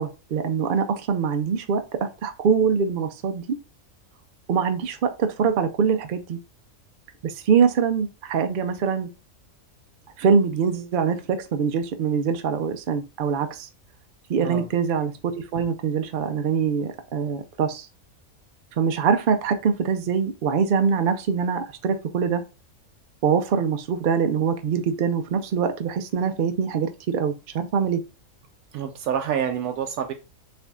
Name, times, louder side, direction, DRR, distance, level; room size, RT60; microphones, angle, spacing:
voice 1, 0.0-3.6 4.5-6.4 7.2-9.1 10.2-13.7 14.3-17.9 18.8-22.4 23.2-28.0, right 6 dB, 70° right, 0.5 m, -23 dB
voice 2, 28.7-30.1, right 8 dB, 90° right, 1.0 m, -27 dB
6.5 x 2.6 x 2.2 m
omnidirectional pair, 1.5 m